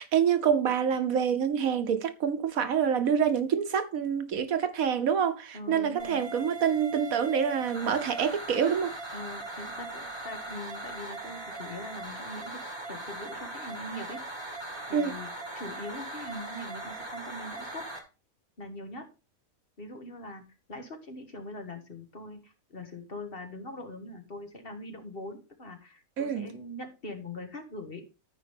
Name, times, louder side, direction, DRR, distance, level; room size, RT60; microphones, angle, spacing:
voice 1, 0.0-8.9 14.9-15.1 26.2-26.5, right 7 dB, 75° right, 1.4 m, -26 dB
voice 2, 5.5-6.2 9.1-14.2 14.9-15.3 15.5-17.9 18.6-19.1 19.8-20.4 20.7-28.1, left 1 dB, 45° left, 1.6 m, -42 dB
sound 1, 6.0-18.0, right 2 dB, 20° right, 1.9 m, -40 dB
13.5 x 4.9 x 3.5 m
omnidirectional pair, 1.5 m